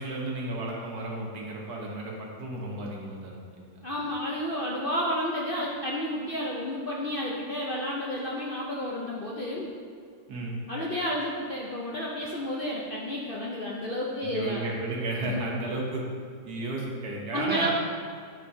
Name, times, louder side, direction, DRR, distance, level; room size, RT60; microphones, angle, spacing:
voice 1, 0.0-3.8 10.3-10.6 14.2-16.0 16.4-17.7, right 2 dB, 70° right, -2 dB, 1.7 m, -33 dB
voice 2, 3.8-9.7 10.7-14.7 15.2-15.4 17.3-17.7, equal, 55° left, -4 dB, 0.6 m, -31 dB
9.1 x 5.8 x 2.7 m, 2.2 s
omnidirectional pair, 1.8 m